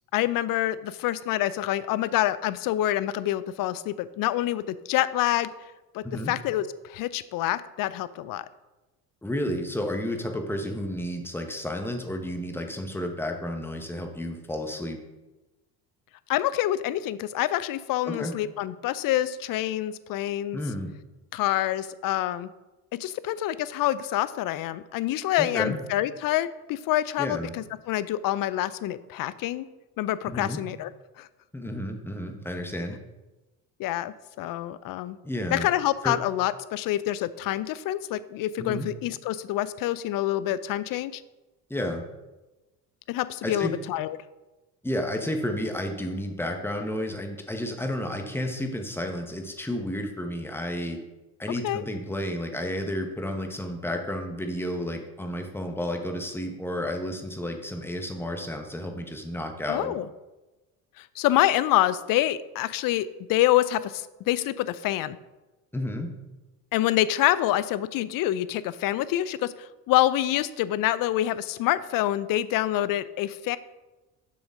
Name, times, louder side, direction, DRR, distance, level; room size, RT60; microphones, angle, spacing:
voice 1, 0.1-5.5 5.9-8.5 16.3-20.6 21.3-22.5 23.0-29.7 30.0-30.9 31.2-31.3 33.8-35.2 35.5-41.2 43.1-44.2 51.6-51.8 59.7-60.1 61.0-65.2 66.7-73.6, left 14 dB, 50° left, 17 dB, 0.5 m, -26 dB
voice 2, 9.2-15.0 18.1-18.3 20.5-20.9 25.4-25.8 27.2-27.5 30.2-30.6 31.5-33.0 35.2-35.7 36.0-36.2 38.6-38.9 41.7-42.0 43.4-43.8 44.8-51.0 51.4-59.9 65.7-66.1, left 1 dB, 5° left, 4 dB, 1.2 m, -31 dB
7.0 x 6.0 x 3.8 m, 1.1 s
hypercardioid pair, 60°, 46 cm